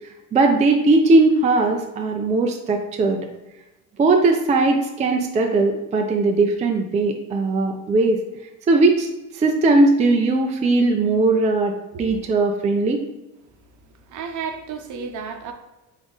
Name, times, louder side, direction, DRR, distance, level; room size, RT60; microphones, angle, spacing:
voice 1, 0.3-3.3 4.0-8.2 8.7-9.1 9.3-13.0, right 3 dB, 20° right, 3 dB, 0.4 m, -19 dB
voice 2, 14.1-15.5, right 6 dB, 50° right, 6 dB, 0.8 m, -32 dB
3.9 x 3.6 x 3.5 m, 0.98 s
supercardioid pair, 90°, 39 cm